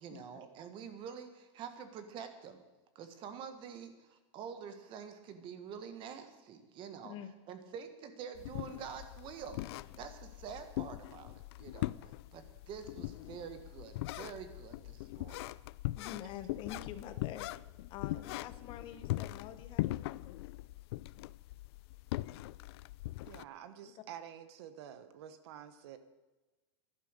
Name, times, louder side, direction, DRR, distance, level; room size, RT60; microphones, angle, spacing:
voice 1, 0.0-2.6 2.9-7.1 7.5-9.6 10.0-11.9 12.3-15.5, right 7 dB, 35° right, 9 dB, 1.6 m, -47 dB
sound 1, 8.4-23.4, left 18 dB, 55° left, 0.4 m, -41 dB
voice 2, 15.9-20.5 23.9-24.0, left 10 dB, 35° left, 11 dB, 1.0 m, -47 dB
voice 3, 23.3-26.0, right 10 dB, 60° right, 11 dB, 1.2 m, -49 dB
14.0 x 11.5 x 6.6 m, 1.2 s
supercardioid pair, 150°, 15 cm